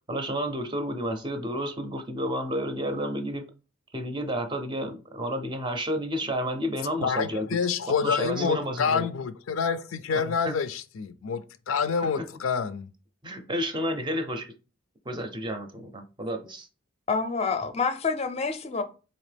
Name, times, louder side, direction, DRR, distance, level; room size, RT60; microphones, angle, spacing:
voice 1, 0.1-3.5 3.9-7.5 8.0-9.1 10.1-10.5 12.0-12.3 13.2-14.5 15.1-16.7, equal, 20° right, 0.5 m, -31 dB
voice 2, 7.0-11.4 11.7-12.9, left 6 dB, 85° left, 0.4 m, -27 dB
voice 3, 17.1-18.8, left 4 dB, 30° left, 0.5 m, -27 dB
4.0 x 2.8 x 3.3 m
head